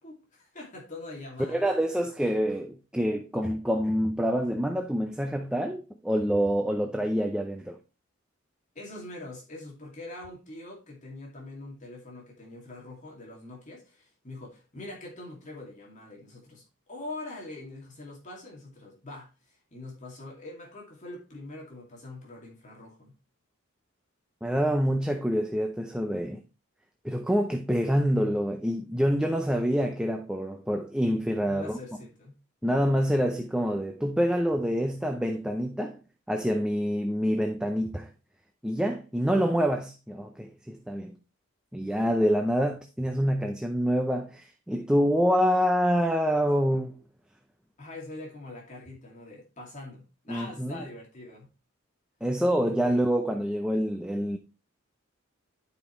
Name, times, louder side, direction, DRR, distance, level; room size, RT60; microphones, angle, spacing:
voice 1, 0.0-1.8 8.7-23.1 31.4-32.3 47.8-51.5 52.8-53.0, left 2 dB, 35° left, 2.4 m, -43 dB
voice 2, 1.5-7.8 24.4-26.4 27.0-31.8 32.6-36.0 36.3-38.1 38.6-41.1 41.7-47.0 50.3-50.8 52.2-54.4, equal, 5° right, 0.5 m, -26 dB
11.0 x 5.2 x 3.1 m
head